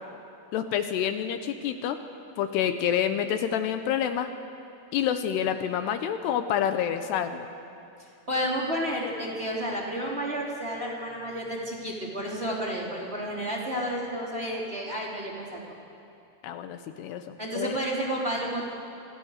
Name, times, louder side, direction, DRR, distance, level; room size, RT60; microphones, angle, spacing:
voice 1, 0.5-2.0 2.4-4.3 4.9-7.5 16.4-17.8, left 9 dB, 80° left, 8 dB, 3.0 m, -28 dB
voice 2, 8.3-15.6 17.4-18.7, equal, 15° right, -3 dB, 3.4 m, -31 dB
28.0 x 26.0 x 6.7 m, 2.7 s
omnidirectional pair, 4.9 m